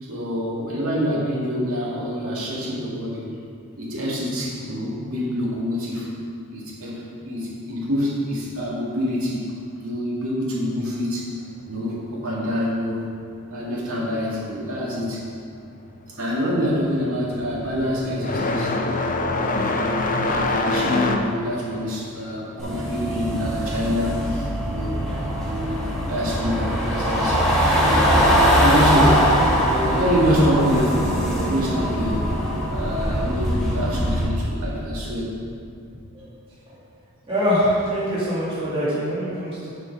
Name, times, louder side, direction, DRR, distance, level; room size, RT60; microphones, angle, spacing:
voice 1, 0.0-3.3 3.8-6.1 6.5-9.4 9.8-11.3 11.7-13.1 13.5-15.3 16.1-18.8 19.2-19.7 20.2-24.9 25.3-27.4 27.8-28.0 28.5-29.3 29.6-32.2 32.7-35.3, equal, 75° right, -5 dB, 2.1 m, -26 dB
sound 1, 15.6-16.0 16.3-24.6 24.9-25.9 26.9-27.0 27.8-27.9 29.7-29.8, left 2 dB, 35° left, 0.5 m, -26 dB
sound 2, 22.6-34.2, equal, ahead, 1.7 m, -21 dB
voice 2, 37.3-39.7, equal, 25° right, -10 dB, 2.1 m, -23 dB
7.1 x 6.3 x 5.3 m, 2.4 s
head